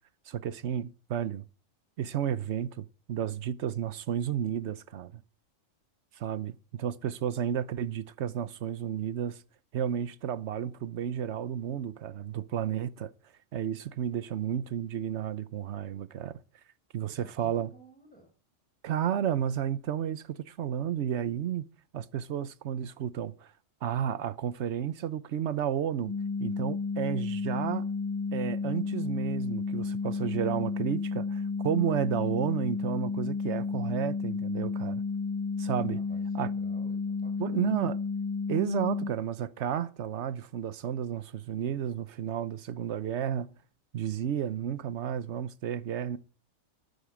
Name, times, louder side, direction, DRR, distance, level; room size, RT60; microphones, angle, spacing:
voice 1, 0.3-1.5 2.0-5.2 6.1-9.4 9.7-13.1 13.5-16.4 16.9-17.7 18.8-21.6 21.9-23.5 23.8-26.1 26.4-27.9 28.3-35.0 35.6-36.0 36.3-36.5 37.4-38.0 38.5-43.5 43.9-46.2, right 9 dB, 60° right, 1.0 m, -32 dB
voice 2, 17.0-18.3 35.9-37.8, right 1 dB, 5° left, 5.6 m, -54 dB
sound 1, 26.1-39.1, left 4 dB, 30° left, 0.4 m, -32 dB
12.0 x 9.3 x 7.4 m
omnidirectional pair, 1.4 m